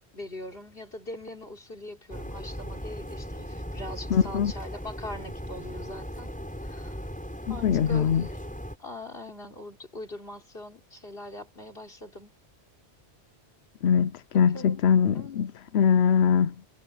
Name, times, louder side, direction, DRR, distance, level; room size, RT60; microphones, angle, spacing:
voice 1, 0.1-6.3 6.6-7.0 7.5-8.4 8.8-12.3 14.5-14.8 15.1-15.5, left 1 dB, 60° left, 3.9 m, -41 dB
sound 1, 2.1-8.8, equal, 5° left, 7.0 m, -38 dB
voice 2, 4.1-4.5 7.5-8.3 13.8-16.6, left 7 dB, 75° left, 0.9 m, -22 dB
omnidirectional pair, 1.1 m